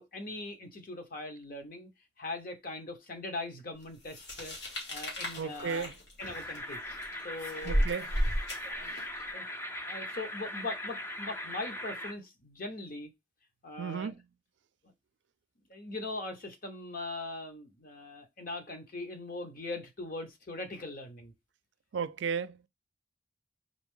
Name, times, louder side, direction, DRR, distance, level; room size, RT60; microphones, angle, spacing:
voice 1, 0.0-1.9 2.2-4.6 4.9-5.9 6.2-6.8 7.2-7.8 8.7-9.0 9.3-9.4 9.8-13.1 13.6-14.1 15.7-21.3, left 2 dB, 50° left, 1.0 m, -40 dB
sound 1, 4.1-9.2, equal, 75° left, 2.1 m, -33 dB
voice 2, 5.4-5.9 6.2-6.3 7.6-8.1 13.8-14.2 21.9-22.7, right 6 dB, 80° right, 0.4 m, -34 dB
sound 2, 6.2-12.1, left 1 dB, 15° left, 0.5 m, -40 dB
4.0 x 3.6 x 3.7 m
head